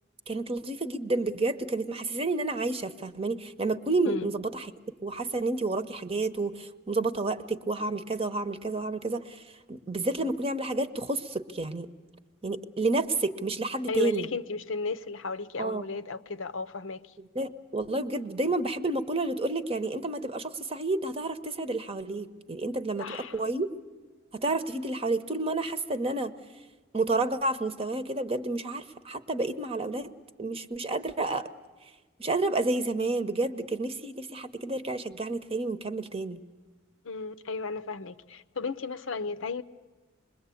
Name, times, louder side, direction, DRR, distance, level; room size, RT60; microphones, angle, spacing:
voice 1, 0.3-4.7 5.0-11.9 12.4-14.3 15.6-15.9 17.3-23.7 24.3-26.3 26.9-30.1 30.4-31.5 32.2-36.4, right 2 dB, 30° right, 0.9 m, -30 dB
voice 2, 13.9-17.1 23.0-23.4 37.0-39.6, left 4 dB, 75° left, 0.7 m, -34 dB
26.5 x 21.5 x 8.4 m
head